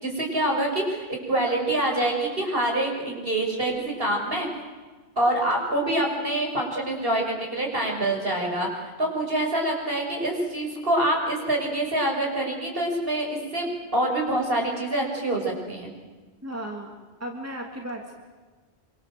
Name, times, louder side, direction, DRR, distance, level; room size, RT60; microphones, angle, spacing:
voice 1, 0.0-4.5 5.2-15.9, right 1 dB, 60° right, 0 dB, 6.8 m, -26 dB
voice 2, 16.4-16.9 17.2-18.1, right 1 dB, 15° right, 1 dB, 2.8 m, -35 dB
26.0 x 25.5 x 7.9 m, 1.3 s
omnidirectional pair, 1.1 m